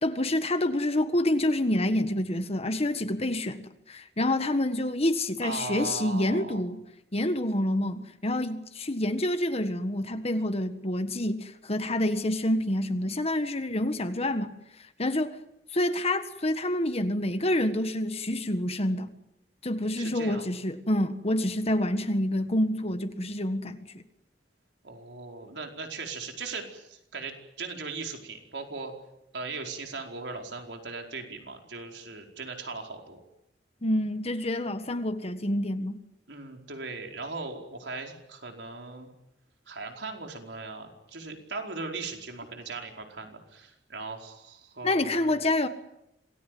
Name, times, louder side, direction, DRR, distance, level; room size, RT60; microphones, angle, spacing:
voice 1, 0.0-6.8 7.1-14.5 15.0-15.3 15.7-19.1 19.6-24.0 33.8-36.0 44.8-45.7, left 1 dB, 35° left, 1.5 m, -27 dB
voice 2, 5.4-6.6 20.0-20.5 24.8-28.9 29.3-33.2 36.3-39.1 39.7-45.4, right 3 dB, 85° right, 4.7 m, -38 dB
27.0 x 19.5 x 9.4 m
head